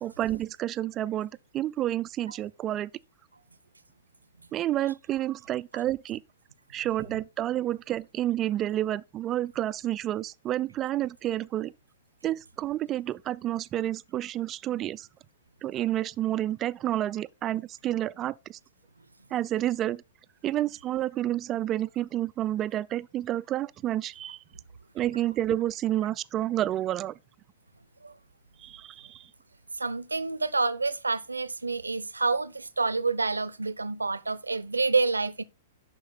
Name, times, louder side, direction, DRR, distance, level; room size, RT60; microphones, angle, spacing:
voice 1, 0.0-2.9 4.5-6.2 6.7-11.7 12.2-15.1 15.6-18.6 19.3-20.0 20.4-24.4 24.9-27.1 28.6-29.3, right 13 dB, 25° right, 0.3 m, -30 dB
voice 2, 29.7-35.4, right 3 dB, 80° right, 0.6 m, -28 dB
11.0 x 4.4 x 4.1 m
figure-of-eight pair, 105°, 0 cm